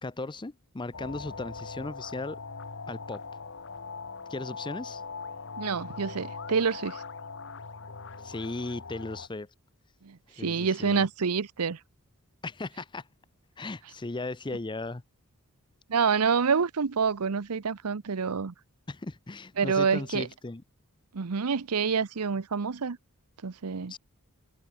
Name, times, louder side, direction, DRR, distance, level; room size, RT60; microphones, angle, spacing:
voice 1, 0.0-2.4 2.9-3.2 4.3-5.0 8.2-9.5 10.4-11.1 12.4-13.1 13.6-15.0 18.9-20.6 23.9-24.0, left 2 dB, 20° left, 0.6 m, -37 dB
sound 1, 0.9-9.3, left 4 dB, 60° left, 1.6 m, -41 dB
voice 2, 5.6-7.0 10.0-11.8 15.9-18.5 19.6-20.3 21.1-23.0 23.4-23.9, right 5 dB, 85° right, 0.8 m, -27 dB
head